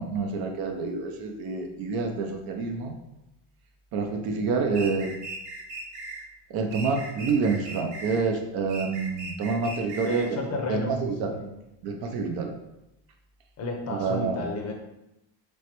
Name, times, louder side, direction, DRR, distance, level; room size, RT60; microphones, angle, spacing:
voice 1, 0.0-3.0 3.9-5.2 6.5-11.3 11.8-12.5 13.9-14.4, right 4 dB, 50° right, 3 dB, 0.6 m, -28 dB
sound 1, 4.7-6.2 6.7-8.3 8.7-10.3, right 2 dB, 80° right, 1.1 m, -38 dB
voice 2, 10.0-10.9 11.2-11.5 13.6-14.7, left 2 dB, 35° left, 2 dB, 0.6 m, -31 dB
3.2 x 3.1 x 2.9 m, 0.88 s
cardioid pair, 125°, 46 cm